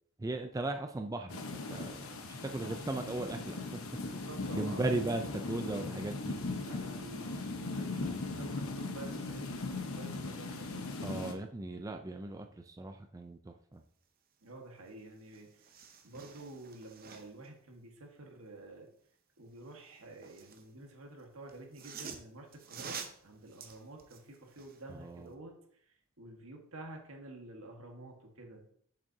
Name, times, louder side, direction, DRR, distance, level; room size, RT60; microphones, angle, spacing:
voice 1, 0.2-3.6 4.5-6.4 11.0-13.8 24.9-25.3, right 2 dB, 15° right, 5 dB, 0.3 m, -37 dB
sound 1, 1.3-11.3, left 3 dB, 90° left, 1.0 m, -39 dB
voice 2, 4.0-4.8 6.7-10.9 14.4-15.6 16.0-18.9 19.4-25.8 26.2-28.6, right 2 dB, 85° right, 2 dB, 1.5 m, -50 dB
sound 2, 14.9-15.0 15.2-17.5 19.6-20.7 21.5-24.8 25.3-25.4, right 6 dB, 45° right, 0.7 m, -48 dB
8.0 x 7.3 x 2.7 m, 0.65 s
head